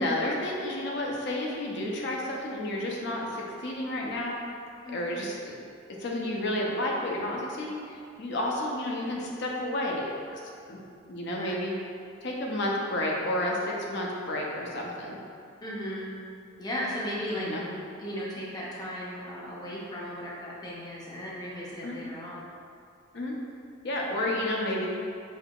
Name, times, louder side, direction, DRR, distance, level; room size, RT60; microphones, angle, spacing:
voice 1, 0.0-4.3 4.9-5.5 6.0-10.4 10.7-10.8 11.1-11.7 12.2-15.2 17.3-17.7 21.8-22.0 23.1-23.3 23.8-24.9, left 1 dB, 55° left, -2 dB, 0.6 m, -31 dB
voice 2, 15.6-16.1 16.6-17.5 18.0-22.4 24.3-24.4, equal, 20° left, -5 dB, 0.6 m, -36 dB
5.4 x 2.8 x 2.3 m, 2.4 s
head